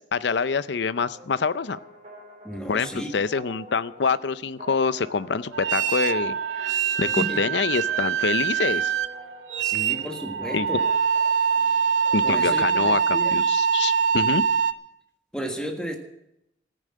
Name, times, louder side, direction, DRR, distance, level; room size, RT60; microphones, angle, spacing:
voice 1, 0.1-1.8 2.7-8.9 10.5-10.7 12.1-14.4, left 5 dB, 75° left, 15 dB, 0.6 m, -26 dB
sound 1, 1.1-12.8, right 2 dB, 40° right, 5.1 m, -46 dB
voice 2, 2.4-3.1 7.0-7.4 9.6-10.8 12.2-13.4 15.3-16.0, equal, 5° left, 3 dB, 1.5 m, -33 dB
sound 2, 5.5-14.7, right 7 dB, 90° right, 0.7 m, -24 dB
14.0 x 10.0 x 7.6 m, 0.84 s
head